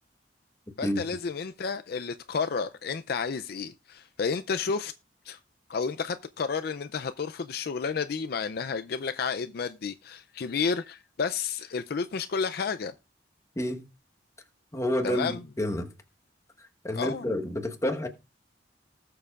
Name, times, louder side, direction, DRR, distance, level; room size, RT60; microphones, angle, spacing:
voice 1, 0.8-4.9 5.3-5.4 5.7-12.9 15.0-15.4 17.0-17.3, left 5 dB, 55° left, 0.4 m, -31 dB
voice 2, 14.7-15.9 16.8-18.1, left 1 dB, 15° left, 1.2 m, -29 dB
19.0 x 6.7 x 2.4 m
head